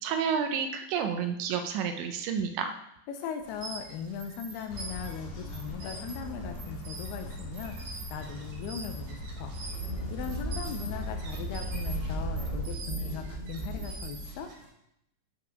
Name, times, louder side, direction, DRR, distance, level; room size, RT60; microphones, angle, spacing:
voice 1, 0.0-2.7, right 7 dB, 85° right, 6 dB, 3.0 m, -30 dB
voice 2, 3.1-7.8 8.1-9.7 10.1-14.5, left 7 dB, 80° left, 6 dB, 2.4 m, -39 dB
sound 1, 3.4-14.4, right 2 dB, 35° right, 1.2 m, -39 dB
sound 2, 3.4-14.7, right 3 dB, 60° right, 2.1 m, -46 dB
sound 3, 4.7-12.7, left 1 dB, 50° left, 3.8 m, -39 dB
11.0 x 4.8 x 5.2 m, 0.81 s
omnidirectional pair, 5.0 m